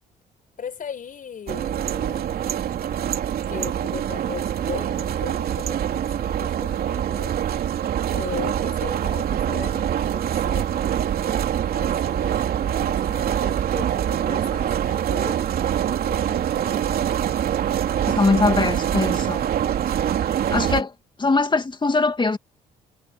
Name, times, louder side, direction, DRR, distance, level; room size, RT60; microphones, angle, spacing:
voice 1, 0.6-2.4 3.5-7.5 8.1-17.2 18.1-18.7 18.9-19.1 19.6-20.2, left 7 dB, 50° left, 7.3 m, -39 dB
Electric Windmill, 1.5-20.8, right 10 dB, 65° right, 3.2 m, -24 dB
voice 2, 18.1-19.4 20.5-20.9 21.2-22.4, left 3 dB, 25° left, 2.5 m, -21 dB
supercardioid pair, 60°, 17 cm